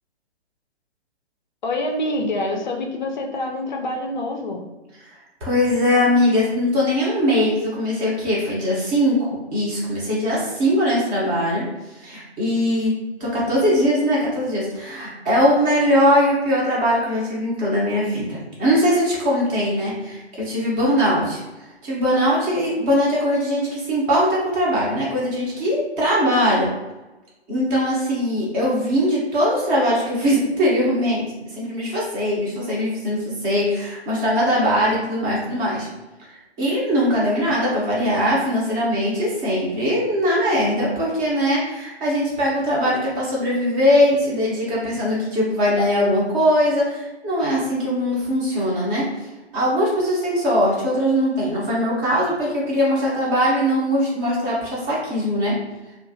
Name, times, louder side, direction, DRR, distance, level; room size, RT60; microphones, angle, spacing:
voice 1, 1.6-4.6, left 1 dB, 45° left, 1 dB, 0.4 m, -26 dB
voice 2, 5.4-11.6 11.9-12.9 13.2-21.4 21.8-26.7 27.5-35.9 36.3-49.0 49.5-55.5, equal, 15° right, -5 dB, 0.6 m, -21 dB
2.6 x 2.4 x 2.6 m, 1.1 s
figure-of-eight pair, 130°, 33 cm